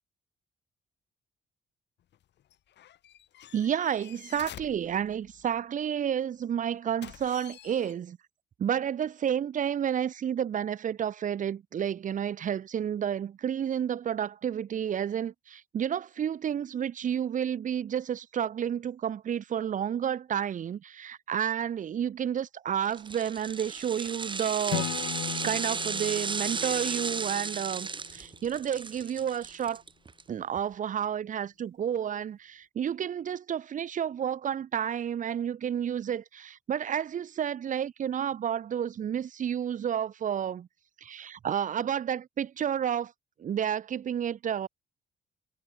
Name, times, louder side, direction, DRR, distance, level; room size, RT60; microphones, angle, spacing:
sound 1, 2.0-5.6 7.0-7.9, left 11 dB, 65° left, 0.9 m, -49 dB
voice 1, 3.5-8.2 8.6-24.9 25.4-29.8 30.3-40.7 41.0-43.1 43.4-44.7, right 9 dB, 40° right, 0.5 m, -31 dB
sound 2, 22.9-30.2 30.6-30.7, right 4 dB, 25° right, 0.9 m, -34 dB
Acoustic guitar / Strum, 24.7-28.3, left 17 dB, 85° left, 0.7 m, -38 dB
cardioid pair, 90°, 20 cm